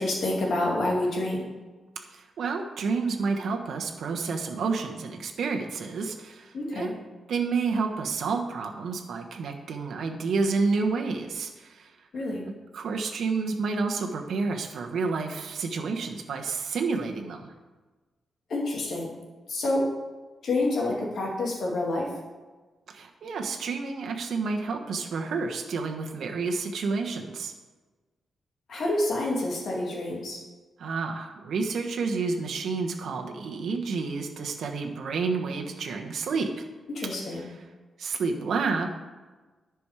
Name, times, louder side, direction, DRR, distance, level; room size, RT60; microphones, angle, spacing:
voice 1, 0.0-1.4 6.5-6.9 12.1-12.5 18.5-19.1 19.5-19.9 20.4-22.1 28.7-30.4 36.9-37.5, left 2 dB, 60° left, -2 dB, 2.4 m, -28 dB
voice 2, 2.1-6.9 7.3-11.9 12.7-17.5 22.9-27.5 30.8-36.6 37.3-37.5 38.0-38.9, right 4 dB, 70° right, 3 dB, 1.1 m, -30 dB
10.5 x 6.1 x 4.9 m, 1.3 s
wide cardioid pair, 130°, 0 cm